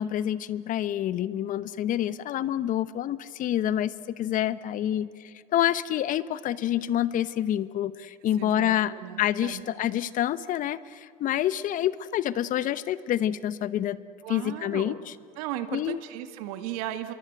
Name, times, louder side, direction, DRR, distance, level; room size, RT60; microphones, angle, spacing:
voice 1, 0.0-14.0 14.3-14.9 15.7-16.0, left 11 dB, 45° left, 16 dB, 0.9 m, -27 dB
voice 2, 8.4-9.7 14.2-15.0 15.4-17.1, right 12 dB, 75° right, 9 dB, 1.9 m, -36 dB
27.5 x 23.0 x 8.1 m, 2.3 s
hypercardioid pair, 95°, 19 cm